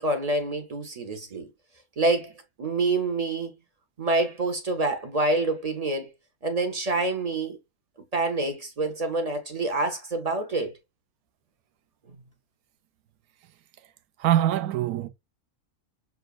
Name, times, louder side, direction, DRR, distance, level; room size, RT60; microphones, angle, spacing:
voice 1, 0.0-1.5 2.0-2.3 2.6-3.5 4.0-6.1 6.4-7.6 8.1-10.7, right 2 dB, 50° right, 0.4 m, -27 dB
voice 2, 14.2-15.1, right 12 dB, 80° right, 1.1 m, -23 dB
6.9 x 2.4 x 2.3 m
omnidirectional pair, 1.6 m